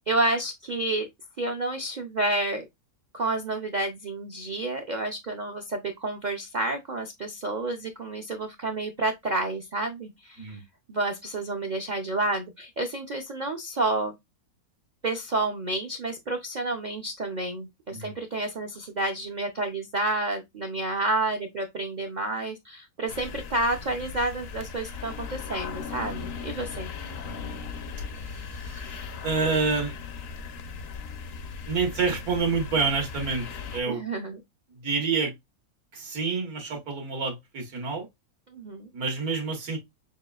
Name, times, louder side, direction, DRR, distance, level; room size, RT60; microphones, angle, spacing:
voice 1, 0.1-1.1 1.4-2.7 3.1-10.6 10.9-14.1 15.0-26.9 33.9-34.4 38.5-38.9, right 2 dB, 70° right, 0.4 m, -30 dB
sound 1, 23.1-33.8, left 5 dB, 60° left, 0.7 m, -38 dB
voice 2, 27.2-27.6 28.2-30.0 31.7-33.5 33.7-34.1 34.7-35.3 35.9-38.1 38.9-39.8, right 4 dB, 90° right, 1.9 m, -28 dB
6.7 x 2.3 x 2.3 m
omnidirectional pair, 1.5 m